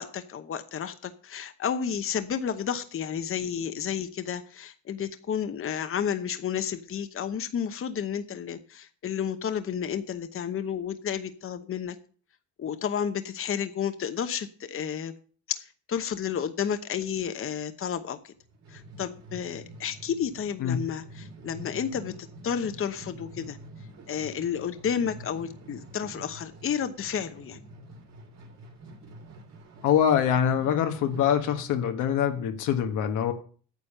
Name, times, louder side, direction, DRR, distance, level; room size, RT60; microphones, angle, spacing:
voice 1, 0.0-12.0 12.6-15.1 15.5-18.3 18.7-23.6 24.1-27.6, left 8 dB, 45° left, 10 dB, 0.9 m, -31 dB
sound 1, 18.3-31.6, right 1 dB, 60° right, 2.9 m, -47 dB
voice 2, 29.8-33.3, left 9 dB, 90° left, 6 dB, 1.4 m, -24 dB
9.3 x 7.2 x 6.6 m, 0.43 s
cardioid pair, 90°, 30 cm